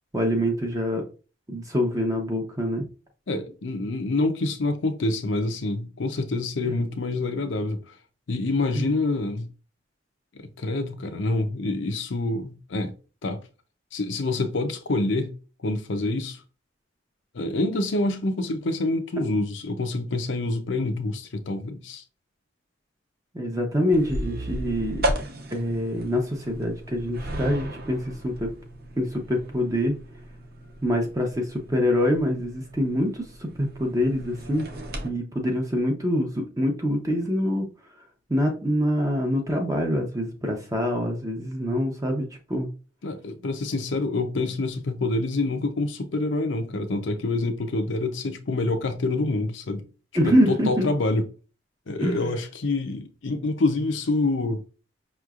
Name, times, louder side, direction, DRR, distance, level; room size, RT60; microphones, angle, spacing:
voice 1, 0.1-1.0 1.5-2.9 8.7-8.9 23.3-25.0 25.5-28.5 29.0-30.0 30.8-34.7 35.0-37.7 38.3-42.7 50.1-50.9 52.0-52.3, equal, 15° right, 0.6 m, -25 dB
voice 2, 3.3-7.9 8.3-9.5 10.3-12.9 13.2-13.4 13.9-15.3 15.6-16.4 17.3-22.0 43.0-49.9 50.2-51.3 51.9-54.6, left 2 dB, 75° left, 0.6 m, -27 dB
sound 1, 23.9-35.1, right 1 dB, 55° right, 0.8 m, -35 dB
5.6 x 3.0 x 2.4 m
head